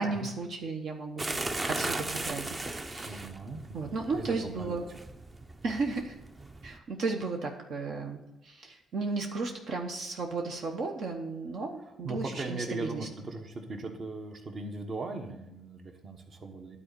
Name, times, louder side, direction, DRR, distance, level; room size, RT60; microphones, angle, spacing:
voice 1, 0.0-3.3 3.7-4.9 5.6-6.2 6.6-13.1, right 3 dB, 65° right, 2 dB, 1.0 m, -34 dB
sound 1, 1.2-6.8, right 2 dB, 25° right, 0.6 m, -37 dB
voice 2, 3.0-4.8 12.0-16.8, right 3 dB, 45° right, 5 dB, 1.2 m, -39 dB
9.9 x 4.2 x 6.9 m, 0.92 s
cardioid pair, 90°, 0 cm